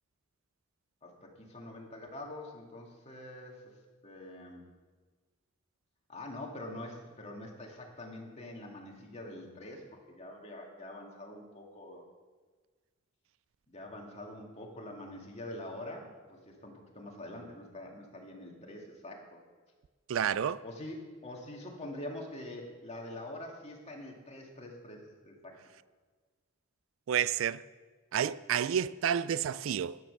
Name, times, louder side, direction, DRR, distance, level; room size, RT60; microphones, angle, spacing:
voice 1, 1.0-3.6 4.0-4.7 6.1-12.0 13.7-19.4 20.6-25.6, left 1 dB, 30° left, 2.2 m, -45 dB
voice 2, 20.1-20.6 27.1-27.6 28.1-30.0, right 8 dB, 70° right, 0.3 m, -30 dB
12.0 x 9.6 x 6.7 m
head